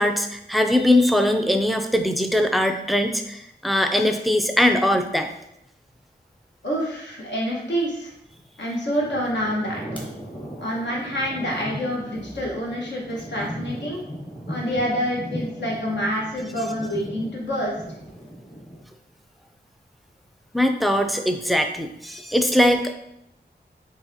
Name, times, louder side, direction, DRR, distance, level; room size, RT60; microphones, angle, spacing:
voice 1, 0.0-5.3 20.5-22.9, left 1 dB, ahead, 5 dB, 0.4 m, -21 dB
voice 2, 6.6-8.1 8.6-10.0 10.6-14.0 14.5-17.7, equal, 80° left, -4 dB, 1.2 m, -27 dB
sound 1, 9.0-18.8, equal, 25° left, 1.0 m, -37 dB
4.7 x 3.3 x 2.8 m, 0.80 s
wide cardioid pair, 95°, 18 cm